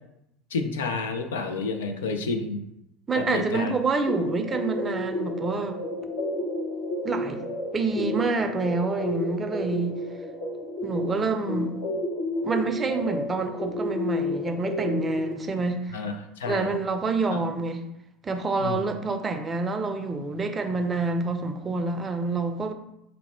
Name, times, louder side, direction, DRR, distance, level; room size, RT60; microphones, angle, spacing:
voice 1, 0.5-2.6 3.1-3.7 15.9-16.7 18.6-18.9, left 4 dB, 80° left, 7 dB, 0.4 m, -30 dB
voice 2, 3.1-5.8 7.0-7.5 7.7-10.0 10.8-11.8 12.4-16.0 16.5-17.8 18.2-22.7, right 3 dB, 25° right, 6 dB, 0.5 m, -27 dB
sound 1, 4.1-15.3, left 1 dB, 50° left, 0.8 m, -31 dB
4.1 x 2.1 x 4.2 m, 0.82 s
hypercardioid pair, 75°, 0 cm